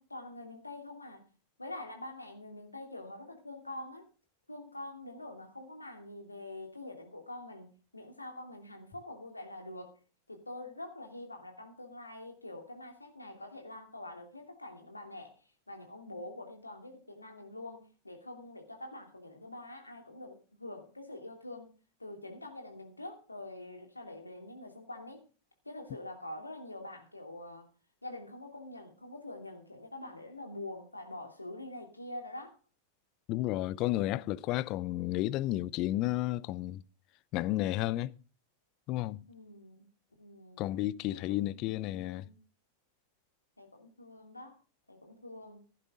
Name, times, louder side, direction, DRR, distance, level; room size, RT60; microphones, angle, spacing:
voice 1, 0.0-1.3 1.6-4.1 4.5-9.9 10.3-15.3 15.7-21.7 22.0-25.2 25.6-27.7 28.0-32.6 39.3-39.9 40.2-40.6 41.1-42.4 43.6-44.6 44.9-45.7, left 2 dB, 85° left, 2.9 m, -45 dB
voice 2, 33.3-36.8 37.3-38.1 38.9-39.2 40.6-42.2, left 16 dB, 40° left, 0.5 m, -32 dB
15.5 x 11.0 x 3.7 m
figure-of-eight pair, 90°, 0 cm